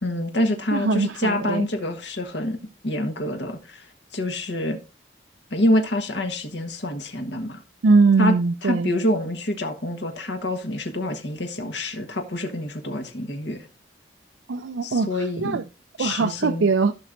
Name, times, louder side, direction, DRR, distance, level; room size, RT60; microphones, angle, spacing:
voice 1, 0.0-2.6 2.8-3.9 4.1-4.8 5.5-7.6 8.2-8.3 8.6-13.7 14.8-15.6 16.0-16.6, left 1 dB, 75° left, 1.3 m, -26 dB
voice 2, 0.7-1.7 7.8-8.9 14.5-15.6 16.0-16.9, right 4 dB, 80° right, 0.5 m, -21 dB
15.5 x 6.1 x 2.6 m
head